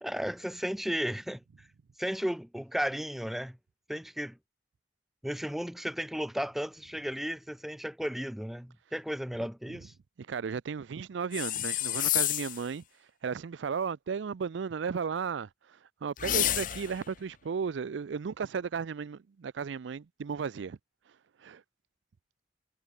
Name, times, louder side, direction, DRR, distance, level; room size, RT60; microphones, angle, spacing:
voice 1, 0.0-1.7 2.0-3.6 3.9-4.4 5.2-9.9, equal, ahead, 0.3 m, -34 dB
voice 2, 10.3-12.8 13.2-15.5 16.0-20.8 21.4-21.6, right 6 dB, 90° right, 0.4 m, -34 dB
sound 1, 11.3-12.7 16.2-17.0, left 13 dB, 50° left, 0.8 m, -29 dB
head